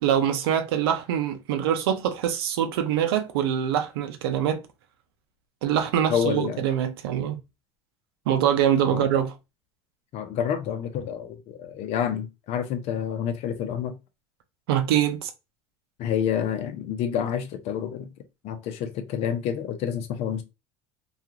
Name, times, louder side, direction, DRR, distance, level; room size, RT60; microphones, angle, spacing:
voice 1, 0.0-4.6 5.6-7.4 8.3-9.3 14.7-15.3, right 9 dB, 90° right, 0.6 m, -24 dB
voice 2, 6.1-6.6 8.9-9.1 10.1-14.0 16.0-18.1 18.4-20.4, left 8 dB, 60° left, 0.6 m, -28 dB
2.4 x 2.3 x 2.8 m
supercardioid pair, 95°, 12 cm